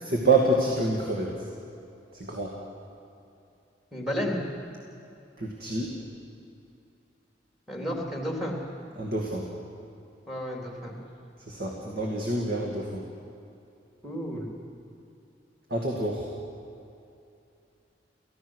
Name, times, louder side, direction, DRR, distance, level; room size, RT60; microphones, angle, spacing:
voice 1, 0.1-1.3 2.1-2.5 5.4-5.9 9.0-9.5 11.5-13.0 15.7-16.3, right 2 dB, 50° right, -1 dB, 2.3 m, -27 dB
voice 2, 3.9-4.4 7.7-8.5 10.3-10.9 14.0-14.5, equal, ahead, -1 dB, 3.3 m, -32 dB
29.5 x 15.5 x 6.4 m, 2.6 s
head